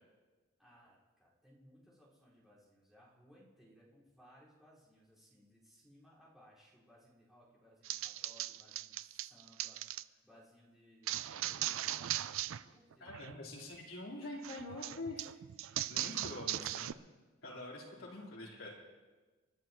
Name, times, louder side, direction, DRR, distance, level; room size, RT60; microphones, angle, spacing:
voice 1, 0.6-13.1 18.0-18.2, equal, ahead, -10 dB, 4.8 m, -63 dB
sound 1, 7.8-10.0 11.1-12.6 12.9-13.3 14.4-16.9, right 13 dB, 70° right, 0.4 m, -39 dB
voice 2, 13.0-15.3 15.6-17.0 17.4-18.7, left 2 dB, 70° left, -5 dB, 3.9 m, -45 dB
29.0 x 11.0 x 3.1 m, 1.3 s
head